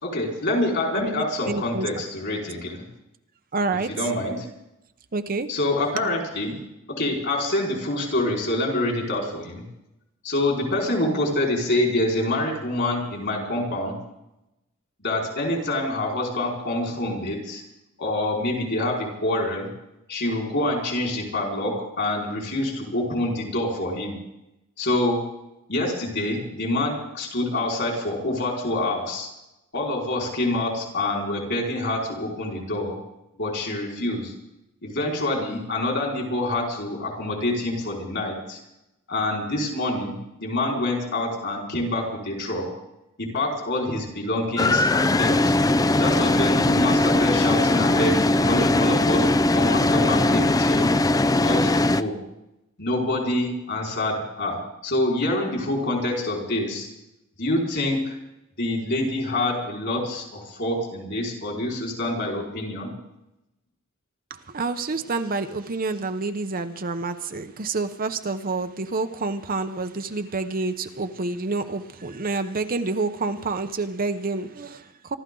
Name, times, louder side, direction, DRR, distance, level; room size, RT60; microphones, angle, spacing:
voice 1, 0.0-2.8 3.9-4.5 5.5-6.6 7.0-9.6 10.2-13.9 15.0-17.6 18.0-19.7 20.1-24.1 24.8-25.2 25.7-29.3 29.7-33.0 33.4-34.3 34.8-38.6 39.1-42.7 43.2-45.5 46.0-50.9 51.4-52.2 52.8-56.9 57.4-58.2 58.6-62.9, left 1 dB, 55° left, -1 dB, 4.9 m, -26 dB
voice 2, 0.9-1.9 3.5-3.9 5.1-5.5 64.3-75.2, right 3 dB, 40° right, 9 dB, 0.8 m, -28 dB
sound 1, 44.6-52.0, left 2 dB, 15° left, 0.4 m, -20 dB
26.0 x 13.0 x 3.9 m, 0.89 s
head